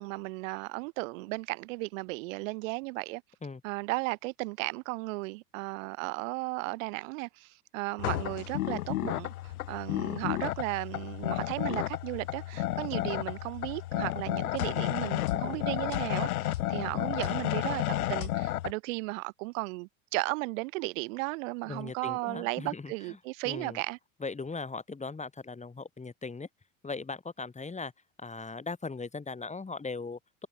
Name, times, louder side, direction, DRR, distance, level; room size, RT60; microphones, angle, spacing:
voice 1, 0.0-3.2 3.6-24.0, right 25 dB, 65° right, 5.8 m, -35 dB
sound 1, 8.0-18.7, left 15 dB, 80° left, 0.7 m, -32 dB
voice 2, 21.7-22.9 23.4-23.8 24.2-26.5 26.8-27.9 28.2-30.5, left 4 dB, 15° left, 5.8 m, -39 dB
hypercardioid pair, 85°, 42 cm